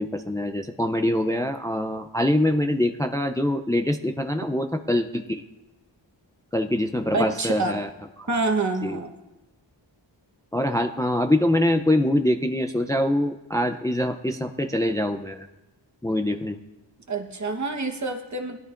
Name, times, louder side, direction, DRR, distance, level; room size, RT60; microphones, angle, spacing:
voice 1, 0.0-5.4 6.5-7.9 8.2-8.3 8.8-9.0 10.5-15.5 16.0-16.6, left 1 dB, 10° left, 6 dB, 0.5 m, -24 dB
voice 2, 7.1-7.7 8.3-9.1 17.1-18.6, right 3 dB, 40° right, 4 dB, 1.2 m, -27 dB
17.5 x 12.0 x 2.5 m, 1.0 s
wide cardioid pair, 85°, 44 cm